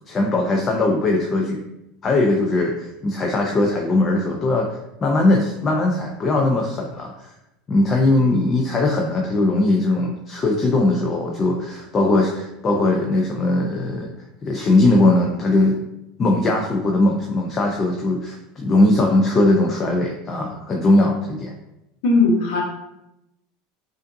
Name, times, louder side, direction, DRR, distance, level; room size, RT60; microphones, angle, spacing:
voice 1, 0.1-1.6 2.0-4.7 5.0-7.3 7.7-14.1 14.4-15.8 16.2-21.5, left 2 dB, 30° left, 0 dB, 0.5 m, -19 dB
voice 2, 22.0-22.6, left 3 dB, 70° left, -1 dB, 1.2 m, -17 dB
4.9 x 2.6 x 2.6 m, 0.88 s
supercardioid pair, 115°, 0 cm